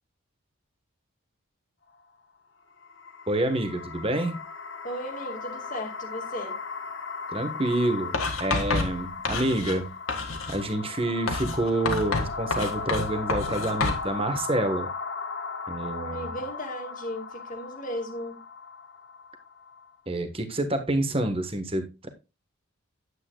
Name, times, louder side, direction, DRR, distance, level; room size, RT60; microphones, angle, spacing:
sound 1, 2.7-19.9, left 4 dB, 55° left, 1.2 m, -37 dB
voice 1, 3.3-4.3 7.3-8.1 8.4-9.9 10.5-14.9 15.7-16.4 20.1-22.1, right 1 dB, 25° right, 7 dB, 1.3 m, -28 dB
voice 2, 4.8-6.5 15.9-18.4, equal, 40° left, 4 dB, 2.1 m, -36 dB
Writing, 8.1-9.8 10.1-10.6 11.3-14.0, left 3 dB, 75° left, 1.9 m, -29 dB
9.6 x 8.9 x 2.3 m, 0.27 s
head